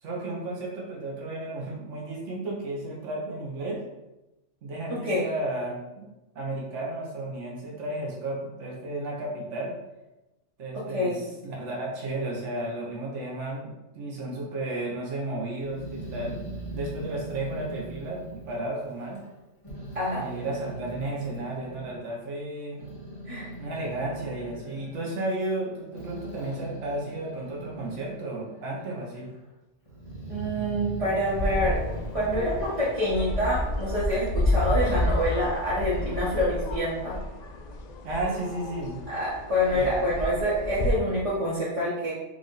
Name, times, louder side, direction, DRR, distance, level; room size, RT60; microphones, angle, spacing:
voice 1, 0.0-3.8 4.6-6.1 6.3-9.7 10.6-16.4 16.7-19.2 20.2-22.8 23.6-29.3 34.7-35.1 38.0-39.0 39.7-40.0, right 2 dB, 75° right, -3 dB, 1.3 m, -33 dB
voice 2, 4.9-5.2 10.9-11.1 19.9-20.2 23.3-23.5 30.3-31.8 32.1-37.2 39.1-42.1, equal, 30° right, -10 dB, 1.1 m, -26 dB
Growling, 15.6-19.3 19.6-22.0 22.5-28.4 28.7-29.4 29.9-33.6, right 1 dB, 25° left, 1.2 m, -41 dB
sound 1, 31.3-41.0, left 1 dB, 60° left, 0.4 m, -30 dB
4.8 x 2.6 x 3.9 m, 0.98 s
omnidirectional pair, 1.2 m